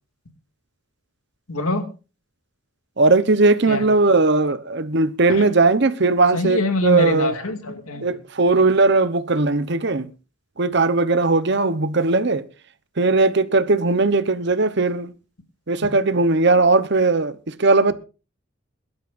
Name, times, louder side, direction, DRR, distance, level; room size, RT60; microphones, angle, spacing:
voice 1, 1.5-1.9 3.7-3.9 5.3-5.4 6.3-8.1 15.8-15.9, left 2 dB, 90° left, 2.2 m, -24 dB
voice 2, 3.0-7.3 8.0-10.1 10.6-12.4 13.0-15.1 15.7-17.9, right 3 dB, 50° right, 0.9 m, -18 dB
22.5 x 12.5 x 2.6 m
head